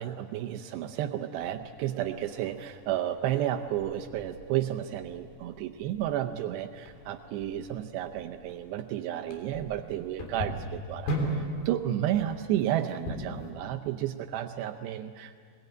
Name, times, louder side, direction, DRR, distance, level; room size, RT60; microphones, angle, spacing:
voice 1, 0.0-15.4, right 12 dB, 80° right, 5 dB, 2.9 m, -32 dB
sound 1, 1.9-13.5, equal, 60° left, 5.1 m, -39 dB
23.5 x 21.0 x 9.2 m, 2.2 s
omnidirectional pair, 4.9 m